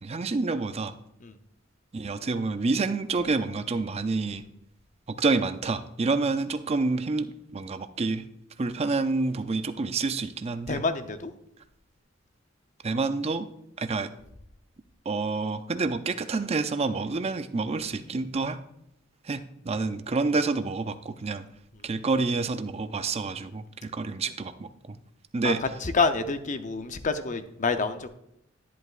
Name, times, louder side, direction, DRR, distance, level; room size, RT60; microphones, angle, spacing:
voice 1, 0.0-0.9 1.9-4.4 5.1-8.2 8.6-10.8 12.8-13.5 13.8-14.1 15.1-18.6 19.2-21.5 21.8-25.0 25.3-25.6, right 3 dB, 30° right, 10 dB, 0.5 m, -28 dB
voice 2, 10.7-11.3 25.4-25.5 25.8-28.1, left 4 dB, 40° left, 9 dB, 0.6 m, -27 dB
11.0 x 10.5 x 2.5 m, 0.78 s
head